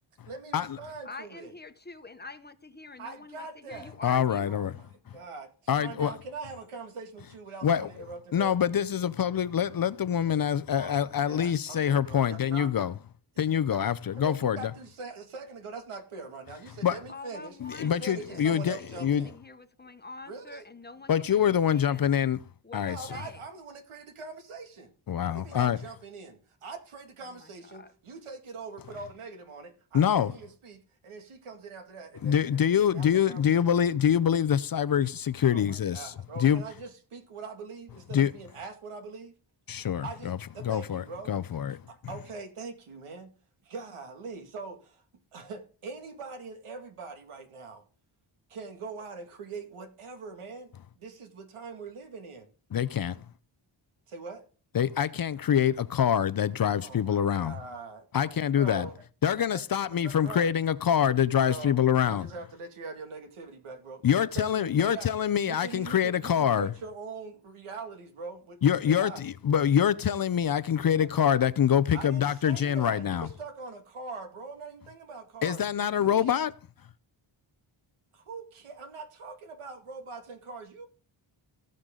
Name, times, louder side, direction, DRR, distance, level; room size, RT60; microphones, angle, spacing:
voice 1, 0.2-1.5 3.0-4.0 4.4-5.5 5.8-8.5 10.8-12.9 13.3-13.9 14.1-19.4 20.3-20.7 22.9-24.9 25.3-33.7 35.5-39.4 40.0-41.3 41.9-43.3 43.6-45.0 45.3-47.8 48.5-52.5 54.1-54.5 56.8-59.0 59.3-59.6 59.9-60.5 61.4-65.1 65.4-69.3 71.0-71.1 71.9-75.6 75.9-76.4 78.1-80.9, right 4 dB, 90° right, 2.3 m, -43 dB
voice 2, 1.0-4.5 17.1-22.2 22.6-23.4 27.4-27.5 27.7-27.9, left 3 dB, 20° left, 1.0 m, -46 dB
voice 3, 4.0-4.8 5.7-6.2 7.6-7.9 8.3-12.9 13.4-14.7 16.8-17.0 17.6-19.3 21.1-22.4 22.7-23.0 25.1-25.8 29.9-30.3 32.2-36.1 36.4-36.6 38.1-38.3 39.7-40.4 40.6-41.8 52.7-53.2 54.7-57.5 58.1-58.9 59.2-62.3 64.0-66.7 68.6-73.3 75.4-76.5, left 9 dB, 45° left, 0.6 m, -25 dB
17.5 x 6.6 x 3.8 m
wide cardioid pair, 115°, 49 cm